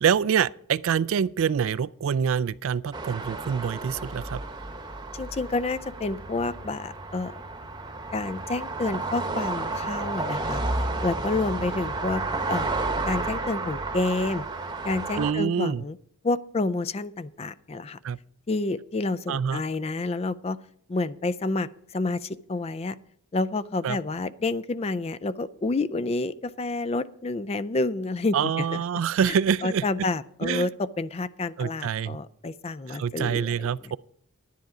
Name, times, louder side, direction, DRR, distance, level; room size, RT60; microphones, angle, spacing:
voice 1, 0.0-4.4 15.2-15.8 18.0-18.2 19.3-19.6 23.8-24.0 28.3-29.9 30.4-30.7 31.6-32.2 32.9-34.0, right 7 dB, 65° right, 0.3 m, -26 dB
sound 1, 2.9-15.3, right 2 dB, 20° right, 1.0 m, -32 dB
voice 2, 5.1-7.4 8.1-12.2 12.5-12.7 13.1-14.4 14.8-16.0 16.2-18.0 18.5-20.6 20.9-23.0 23.3-28.8 29.6-33.7, left 3 dB, 30° left, 0.4 m, -29 dB
10.5 x 10.5 x 4.9 m
head